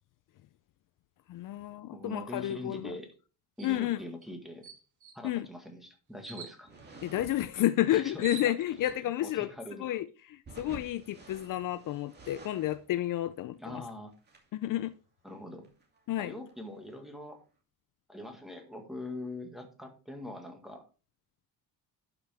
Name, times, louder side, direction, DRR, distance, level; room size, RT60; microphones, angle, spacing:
voice 1, 1.3-3.0 3.6-4.0 5.2-5.5 7.0-9.5 9.8-13.8 14.5-14.9 16.1-16.3, left 13 dB, 60° left, 0.5 m, -31 dB
voice 2, 1.9-3.1 3.6-4.7 5.1-6.7 7.9-8.5 9.2-9.9 13.6-14.1 15.2-15.7 16.2-17.4 18.1-20.8, left 1 dB, ahead, 1.8 m, -43 dB
sound 1, 3.6-3.8 4.2-4.3 4.6-5.2 6.2-6.6 7.7-7.8 8.0-9.0, right 5 dB, 55° right, 2.0 m, -45 dB
sound 2, 6.6-7.5 8.7-9.1 10.4-12.9 13.2-13.3 13.5-13.6 14.1-14.5 15.6-16.0 16.5-16.6 16.8-17.3, right 3 dB, 25° right, 2.5 m, -50 dB
11.5 x 6.0 x 3.4 m
cardioid pair, 140°, 36 cm